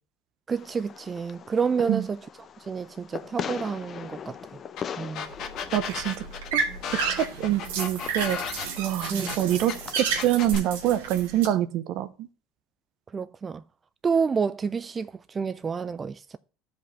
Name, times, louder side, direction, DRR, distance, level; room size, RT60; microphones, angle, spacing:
voice 1, 0.5-2.2 2.6-4.4 5.0-5.3 9.1-9.3 13.1-13.6 14.0-16.4, right 5 dB, 30° right, 0.3 m, -29 dB
Fireworks, 0.6-10.6, left 7 dB, 40° left, 0.6 m, -41 dB
sound 1, 4.8-4.9 5.1-9.8 10.2-10.7, left 7 dB, 60° left, 1.3 m, -35 dB
sound 2, 5.3-11.5, right 5 dB, 90° right, 1.6 m, -32 dB
voice 2, 5.7-6.2 6.5-6.6 7.1-8.4 8.8-12.3, right 12 dB, 60° right, 0.7 m, -26 dB
13.0 x 5.2 x 2.7 m
supercardioid pair, 90°, 0 cm